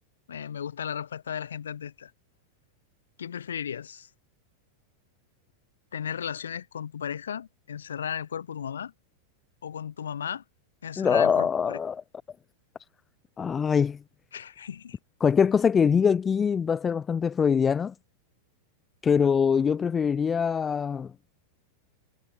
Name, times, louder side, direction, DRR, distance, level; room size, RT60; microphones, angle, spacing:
voice 1, 0.3-2.1 3.2-4.1 5.9-8.9 9.6-10.4 10.8-11.8 14.3-15.0, left 8 dB, 65° left, 2.5 m, -35 dB
voice 2, 11.0-12.0 13.4-14.0 15.2-17.9 19.0-21.1, left 6 dB, 20° left, 0.4 m, -23 dB
figure-of-eight pair, 90°, 0 cm